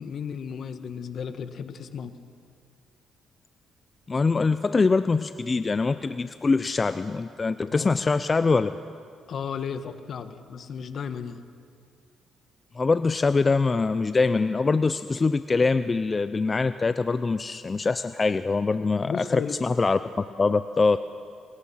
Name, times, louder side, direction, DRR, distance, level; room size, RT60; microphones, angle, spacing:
voice 1, 0.0-2.1 7.7-7.9 9.3-11.4 19.0-19.6, left 7 dB, 60° left, 10 dB, 1.4 m, -34 dB
voice 2, 4.1-8.7 12.8-21.0, left 4 dB, 30° left, 12 dB, 0.6 m, -23 dB
27.5 x 21.5 x 5.8 m, 2.2 s
cardioid pair, 90°, 0 cm